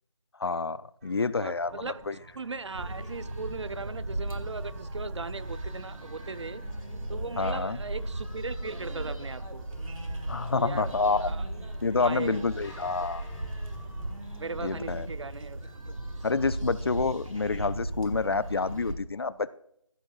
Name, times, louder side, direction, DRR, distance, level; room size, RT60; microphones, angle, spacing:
voice 1, 0.4-0.8 1.0-2.2 7.4-7.8 10.3-11.3 11.8-13.2 14.6-15.1 16.2-19.5, left 4 dB, 50° left, 0.4 m, -28 dB
sound 1, 1.0-16.8, right 4 dB, 30° right, 1.2 m, -52 dB
voice 2, 1.4-6.6 7.1-9.7 10.6-10.9 11.2-11.4 12.0-12.4 14.4-16.0, right 4 dB, 60° right, 0.6 m, -38 dB
sound 2, 2.7-18.9, right 1 dB, 90° right, 2.3 m, -37 dB
sound 3, 6.1-19.0, left 3 dB, 5° left, 0.8 m, -53 dB
15.5 x 12.5 x 2.3 m
figure-of-eight pair, 160°, 17 cm